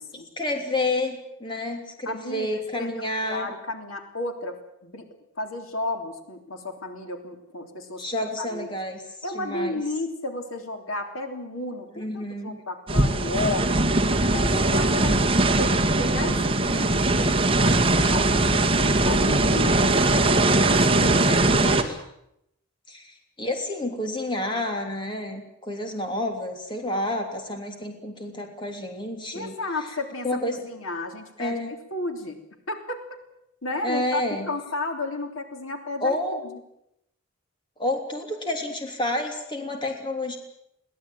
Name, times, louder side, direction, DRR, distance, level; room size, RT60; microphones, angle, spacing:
voice 1, 0.4-3.5 8.0-9.0 9.3-9.8 11.9-12.6 21.3-22.0 22.9-29.5 30.2-30.6 31.4-31.7 33.8-34.5 36.0-36.4 37.8-40.4, left 1 dB, 25° left, 3 dB, 3.3 m, -29 dB
voice 2, 2.0-5.1 5.4-8.0 8.5-8.7 9.2-13.7 14.2-15.2 15.6-20.3 20.6-21.4 29.3-31.6 31.9-32.4 32.7-33.2 33.6-34.2 34.5-36.6, left 2 dB, 85° left, 5 dB, 3.4 m, -33 dB
sound 1, 12.9-21.8, right 2 dB, 25° right, 1.9 m, -20 dB
22.0 x 17.5 x 9.1 m, 0.80 s
head